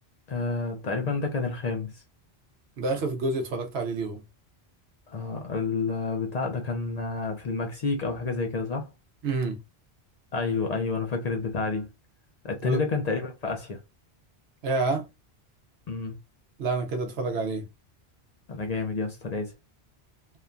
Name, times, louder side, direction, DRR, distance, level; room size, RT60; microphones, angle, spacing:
voice 1, 0.3-2.0 5.1-8.9 10.3-11.9 12.4-13.8 15.9-16.1 18.5-19.5, left 4 dB, 55° left, 0.5 m, -29 dB
voice 2, 2.8-4.2 9.2-9.6 12.6-12.8 14.6-15.0 16.6-17.7, right 3 dB, 80° right, 0.9 m, -28 dB
2.9 x 2.1 x 2.4 m
omnidirectional pair, 1.1 m